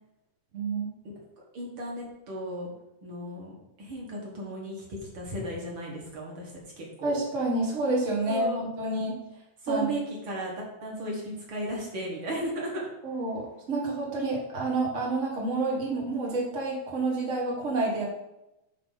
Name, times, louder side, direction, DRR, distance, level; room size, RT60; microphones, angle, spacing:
voice 1, 0.5-0.9 7.0-9.2 9.7-9.9 13.0-13.4 13.7-18.0, right 2 dB, 90° right, -3 dB, 0.6 m, -29 dB
voice 2, 1.5-2.7 3.0-6.5 6.8-7.1 8.3-8.7 9.6-10.5 10.8-12.9, right 1 dB, 50° right, -2 dB, 1.6 m, -35 dB
9.2 x 3.7 x 5.7 m, 0.90 s
omnidirectional pair, 4.3 m